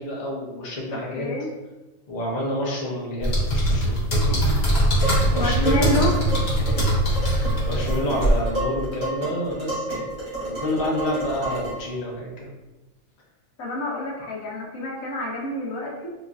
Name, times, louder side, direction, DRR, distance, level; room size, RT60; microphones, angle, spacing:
voice 1, 0.0-1.3 2.1-4.4 5.0-6.1 6.4-6.8 7.2-10.1 10.4-12.5, left 1 dB, 35° left, -5 dB, 0.9 m, -29 dB
voice 2, 0.9-1.5 3.1-3.3 5.4-6.1 13.6-16.1, left 1 dB, 80° left, -4 dB, 1.3 m, -28 dB
sound 1, 3.2-8.4, right 1 dB, 50° left, 1.3 m, -21 dB
Dishes pots and pans, 5.0-11.9, right 1 dB, 55° right, 2.0 m, -31 dB
4.0 x 3.0 x 2.4 m, 1.1 s
omnidirectional pair, 1.4 m